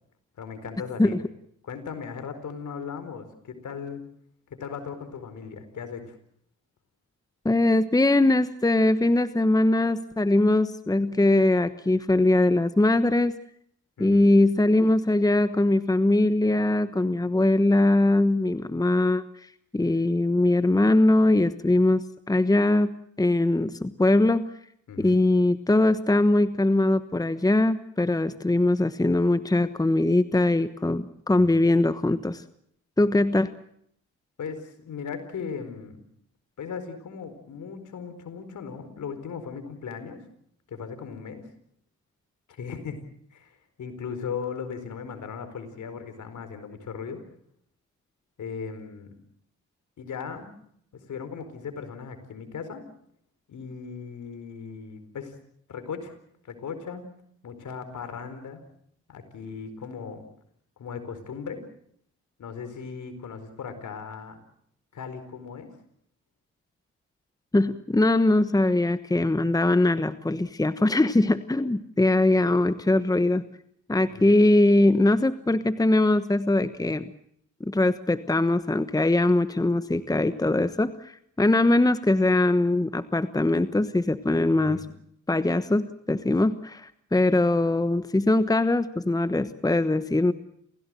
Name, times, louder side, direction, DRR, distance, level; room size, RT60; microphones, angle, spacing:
voice 1, 0.4-1.1 1.6-4.0 4.5-6.2 14.0-14.3 24.9-25.2 31.3-31.6 34.4-36.0 36.6-40.3 40.7-41.5 42.5-43.0 43.3-47.2 48.4-49.2 50.0-50.5 51.1-52.8 53.5-55.3 55.7-56.1 56.4-57.0 57.4-58.6 59.1-60.2 60.8-61.6 62.4-64.4 64.9-65.7 74.1-74.4 84.5-84.9, left 6 dB, 70° left, 9 dB, 4.5 m, -37 dB
voice 2, 7.4-13.3 14.0-19.2 19.7-24.4 25.0-32.4 33.0-33.5 67.5-73.4 73.9-77.1 77.6-84.8 85.3-90.3, left 2 dB, 10° left, 12 dB, 1.2 m, -21 dB
28.5 x 16.5 x 7.7 m, 0.69 s
supercardioid pair, 60°, 31 cm